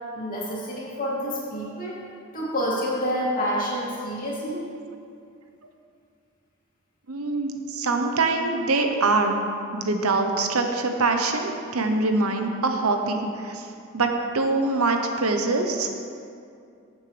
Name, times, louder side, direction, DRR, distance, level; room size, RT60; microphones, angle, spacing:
voice 1, 0.1-2.0 2.3-4.6, equal, 40° left, -6 dB, 2.5 m, -28 dB
voice 2, 7.1-9.4 9.7-13.7 13.9-15.9, right 3 dB, 85° right, 5 dB, 0.9 m, -24 dB
14.5 x 7.2 x 3.4 m, 2.4 s
head